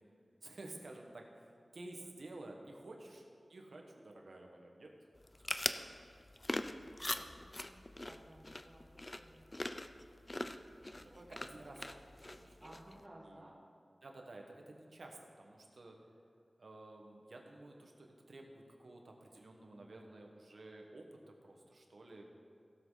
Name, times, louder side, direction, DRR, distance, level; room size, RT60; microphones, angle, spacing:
voice 1, 0.4-4.9 5.5-5.9 10.9-12.8 13.1-13.5 14.0-15.9 16.6-22.3, right 2 dB, 75° right, 1 dB, 1.5 m, -53 dB
sound 1, 5.2-13.0, left 1 dB, 30° left, 0.5 m, -43 dB
voice 2, 6.8-9.5 10.3-11.4 12.6-13.6, right 1 dB, 30° right, -5 dB, 1.6 m, -59 dB
17.0 x 7.6 x 4.0 m, 2.4 s
wide cardioid pair, 65°, 0 cm